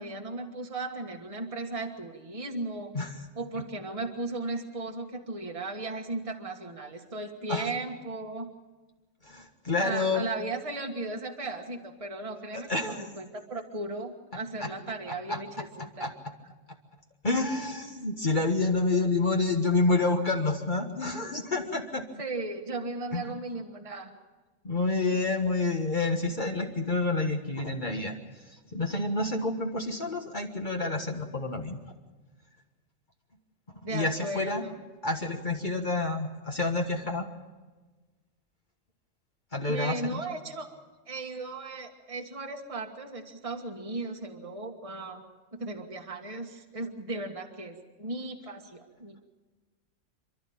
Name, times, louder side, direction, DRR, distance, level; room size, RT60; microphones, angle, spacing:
voice 1, 0.0-2.9 3.4-8.5 9.8-16.1 22.2-24.1 33.8-34.7 39.7-40.8 41.1-45.2 45.5-49.3, right 2 dB, 25° right, 2 dB, 1.6 m, -36 dB
voice 2, 9.2-10.3 12.5-13.1 14.6-14.7 15.1-15.4 15.8-16.1 17.2-22.0 23.1-23.3 24.6-28.1 28.7-31.8 33.9-34.6 35.0-37.3 39.5-40.2, left 3 dB, 40° left, 2 dB, 1.6 m, -28 dB
28.0 x 12.5 x 8.7 m, 1.3 s
omnidirectional pair, 1.3 m